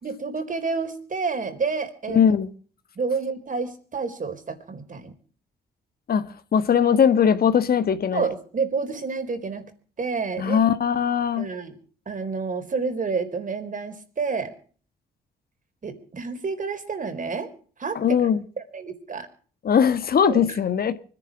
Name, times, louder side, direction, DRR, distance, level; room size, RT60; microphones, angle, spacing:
voice 1, 0.0-2.2 3.0-5.1 8.1-9.7 10.0-10.7 11.4-11.8 12.1-14.5 15.8-17.5 17.8-18.2 18.6-19.3 20.2-20.6, right 4 dB, 45° right, 4.0 m, -29 dB
voice 2, 2.1-2.5 6.1-8.3 10.4-11.5 17.9-18.4 19.6-20.9, left 7 dB, 60° left, 1.4 m, -20 dB
25.0 x 10.5 x 4.8 m
supercardioid pair, 50°, 18 cm